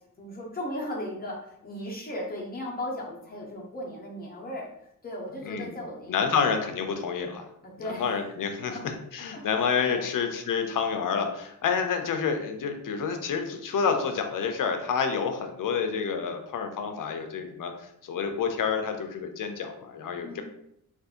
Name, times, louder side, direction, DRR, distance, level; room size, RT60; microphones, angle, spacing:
voice 1, 0.2-4.7 5.0-6.4 7.6-8.0 8.7-8.8 9.3-9.4 9.9-10.0 20.2-20.4, left 1 dB, 25° left, -2 dB, 0.7 m, -36 dB
voice 2, 5.4-5.8 6.1-7.5 7.8-20.4, left 6 dB, 70° left, 6 dB, 0.5 m, -29 dB
2.6 x 2.4 x 3.6 m, 0.76 s
wide cardioid pair, 160°, 34 cm